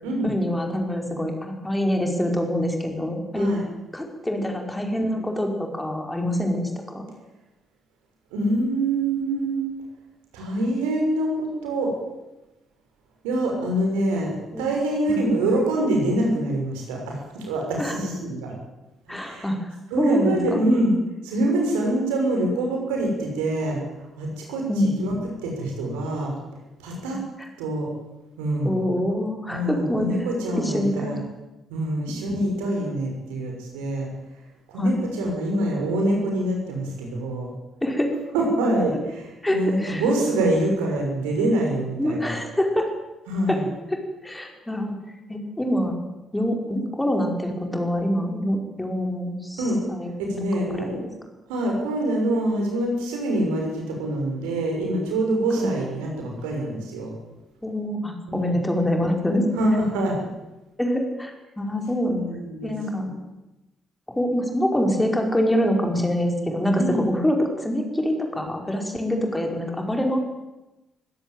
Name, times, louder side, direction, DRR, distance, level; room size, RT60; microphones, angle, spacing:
voice 1, 0.2-3.5 3.9-7.0 14.5-14.7 15.1-15.2 17.8-18.0 19.1-19.7 20.0-20.4 24.7-25.0 27.1-27.2 28.6-30.1 30.5-31.2 34.8-35.0 37.8-38.1 39.4-40.0 42.0-42.9 43.5-43.6 44.2-45.0 45.3-45.9 46.3-49.6 49.9-50.1 50.6-51.1 55.6-55.7 57.6-59.5 60.8-62.2 62.6-63.1 64.1-70.2, equal, 10° left, 3 dB, 5.3 m, -25 dB
voice 2, 8.3-9.6 10.3-11.9 13.2-18.5 19.1-19.5 19.9-20.9 21.2-23.8 24.2-25.1 25.4-26.3 26.8-27.2 27.6-27.9 28.4-28.8 29.5-31.2 31.7-34.1 34.7-37.5 38.3-42.3 43.3-43.7 49.6-49.8 50.2-51.0 51.5-57.1 58.3-58.5 59.6-60.2 62.0-62.7 63.0-63.1 66.7-67.0, right 1 dB, 70° right, 0 dB, 6.4 m, -25 dB
21.5 x 17.0 x 9.2 m, 1.0 s
figure-of-eight pair, 45°, 0 cm